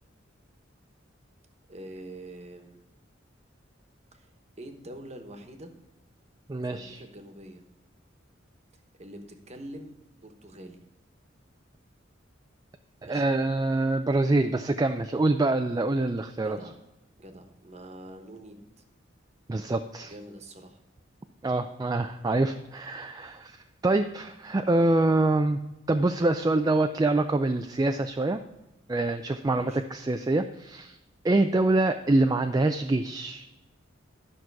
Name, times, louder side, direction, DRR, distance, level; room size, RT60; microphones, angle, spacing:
voice 1, 1.7-2.8 4.1-4.3 4.6-5.7 6.7-7.6 9.0-10.9 13.0-13.3 16.4-16.8 17.2-18.7 20.0-20.8 29.4-29.9, right 1 dB, 35° right, 6 dB, 1.2 m, -45 dB
voice 2, 6.5-7.0 13.1-16.6 19.5-20.1 21.4-25.6 25.9-28.4 28.9-31.0 31.2-33.4, right 2 dB, 20° right, 7 dB, 0.3 m, -25 dB
11.5 x 6.0 x 4.7 m, 1.0 s
head